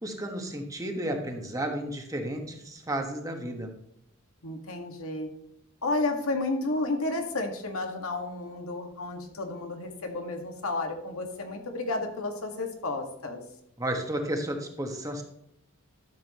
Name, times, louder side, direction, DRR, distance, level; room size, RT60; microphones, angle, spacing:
voice 1, 0.0-3.7 13.8-15.2, right 1 dB, 15° right, 3 dB, 1.3 m, -32 dB
voice 2, 4.4-5.3 5.8-13.4, left 2 dB, 85° left, 3 dB, 1.7 m, -32 dB
12.5 x 7.3 x 3.0 m, 0.75 s
head